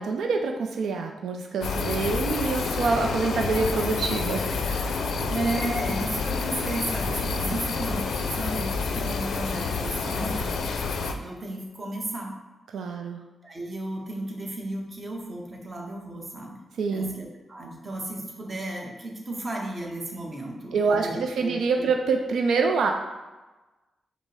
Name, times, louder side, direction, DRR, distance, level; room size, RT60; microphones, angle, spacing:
voice 1, 0.0-5.0 7.4-7.6 12.7-13.2 16.8-17.1 20.7-22.9, right 4 dB, 85° right, 3 dB, 0.4 m, -26 dB
sound 1, 1.6-11.1, left 4 dB, 75° left, 0.4 m, -28 dB
voice 2, 5.3-10.5 11.2-12.3 13.4-16.6 16.9-21.9, right 1 dB, 30° right, -1 dB, 0.9 m, -34 dB
5.2 x 2.0 x 4.7 m, 1.2 s
wide cardioid pair, 125°, 0 cm